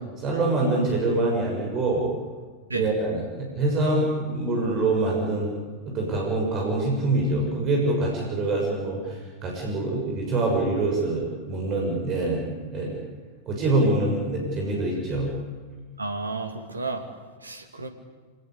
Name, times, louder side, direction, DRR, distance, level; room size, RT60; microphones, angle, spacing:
voice 1, 0.2-2.1 2.7-5.5 5.9-9.2 9.4-12.4 12.7-12.9 13.5-15.3, right 2 dB, 30° right, 0 dB, 7.0 m, -25 dB
voice 2, 16.0-17.0 17.4-17.9, right 3 dB, 80° right, 7 dB, 2.4 m, -31 dB
26.0 x 20.0 x 8.5 m, 1.5 s
figure-of-eight pair, 90°, 0 cm